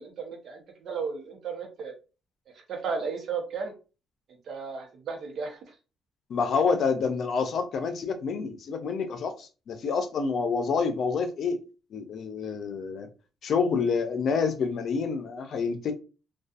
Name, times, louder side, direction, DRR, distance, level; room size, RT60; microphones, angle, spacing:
voice 1, 0.0-1.9 2.7-3.7 4.5-5.6, right 5 dB, 65° right, 0.8 m, -34 dB
voice 2, 6.3-11.6 11.9-13.1 13.4-15.9, left 5 dB, 65° left, 0.5 m, -28 dB
2.5 x 2.3 x 2.3 m
cardioid pair, 90°, 0 cm